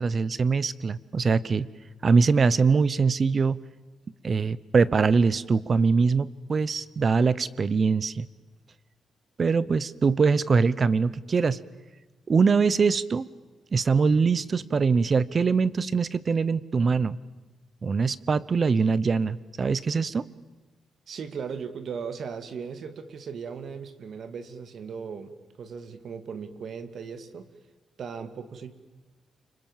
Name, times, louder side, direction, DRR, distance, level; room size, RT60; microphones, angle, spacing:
voice 1, 0.0-1.7 2.0-3.6 4.2-8.3 9.4-11.6 12.3-13.3 13.7-17.2 17.8-20.3, right 5 dB, 35° right, 19 dB, 0.9 m, -23 dB
voice 2, 21.1-27.5 28.0-28.8, right 6 dB, 55° right, 11 dB, 2.2 m, -37 dB
30.0 x 26.0 x 7.4 m, 1.2 s
cardioid pair, 130°, 0 cm